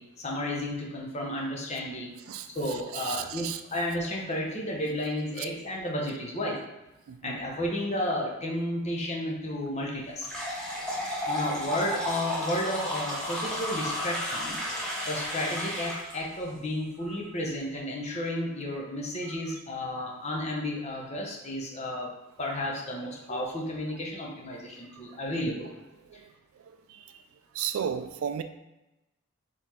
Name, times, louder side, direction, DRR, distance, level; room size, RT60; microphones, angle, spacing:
voice 1, 0.0-2.1 2.5-6.6 7.2-10.3 11.3-14.6 15.1-22.1 22.4-25.7, left 1 dB, 30° left, 0.8 m, -32 dB
voice 2, 2.9-3.6 7.1-7.4 26.1-26.3 26.9-27.1 27.5-28.4, right 8 dB, 75° right, 0.3 m, -33 dB
sound 1, 10.2-16.1, equal, 5° left, 0.8 m, -33 dB
4.0 x 3.1 x 4.1 m
head